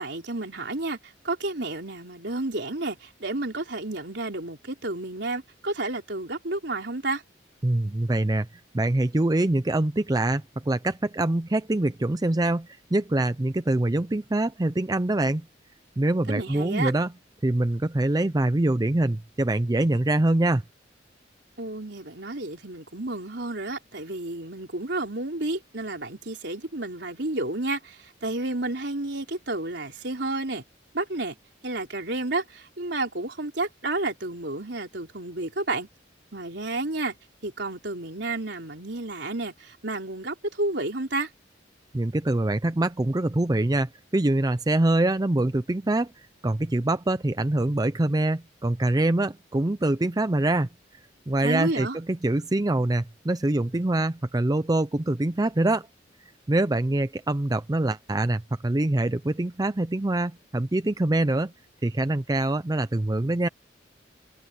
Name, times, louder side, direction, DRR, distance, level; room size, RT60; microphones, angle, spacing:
voice 1, 0.0-7.2 16.3-16.9 21.6-30.6 30.9-31.4 31.6-35.9 36.3-37.1 37.4-41.3 51.4-52.0, right 2 dB, 65° right, 4.2 m, -31 dB
voice 2, 7.6-8.5 8.7-15.5 16.0-17.1 17.4-20.6 41.9-46.1 46.4-50.7 51.3-55.9 56.5-61.5 61.8-63.5, right 1 dB, 20° right, 0.5 m, -24 dB
head